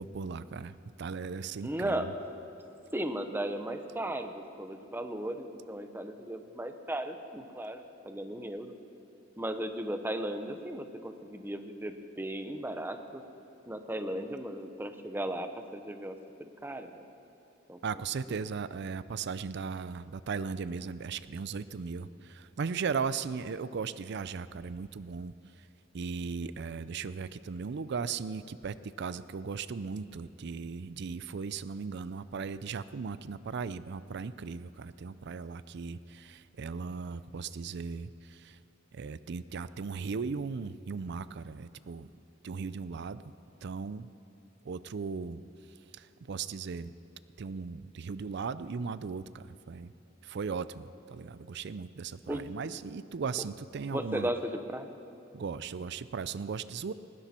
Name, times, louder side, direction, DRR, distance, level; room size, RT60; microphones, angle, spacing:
voice 1, 0.0-2.1 17.8-25.7 25.9-38.6 38.9-42.1 42.4-43.3 43.6-44.1 44.6-45.4 45.9-46.9 47.4-49.9 50.2-54.3 55.3-56.9, right 5 dB, 60° right, 15 dB, 0.4 m, -37 dB
voice 2, 1.6-2.1 2.9-8.7 9.4-13.2 13.7-16.2 16.6-17.0 17.7-17.8 18.3-18.4 52.3-52.4 53.9-54.9, right 1 dB, 10° right, 7 dB, 0.9 m, -36 dB
19.5 x 16.0 x 4.4 m, 3.0 s
head